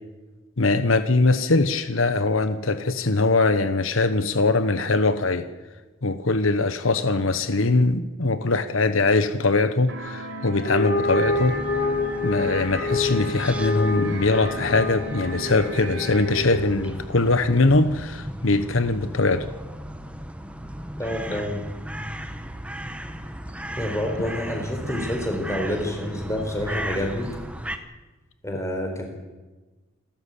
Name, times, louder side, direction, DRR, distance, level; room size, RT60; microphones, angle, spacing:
voice 1, 0.6-5.5 6.0-11.6 12.2-19.5 21.3-21.4, left 3 dB, 80° left, 11 dB, 1.1 m, -22 dB
sound 1, 9.9-16.6, right 3 dB, 65° right, 4.6 m, -37 dB
sound 2, 10.6-17.1, left 3 dB, 40° left, 2.4 m, -28 dB
sound 3, 11.2-27.8, equal, 5° right, 1.1 m, -36 dB
voice 2, 21.0-21.7 23.8-27.3 28.4-29.1, left 1 dB, 15° left, 3 dB, 4.2 m, -28 dB
27.5 x 13.5 x 8.4 m, 1.2 s
head